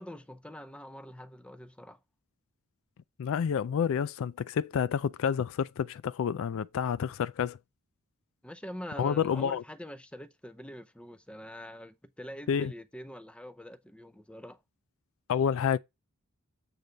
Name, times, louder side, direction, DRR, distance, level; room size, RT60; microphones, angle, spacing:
voice 1, 0.0-2.0 8.4-14.6, equal, 5° left, 0.6 m, -44 dB
voice 2, 3.2-7.6 9.0-9.6 12.5-12.7 15.3-15.8, left 7 dB, 65° left, 0.3 m, -29 dB
9.0 x 3.3 x 5.1 m
head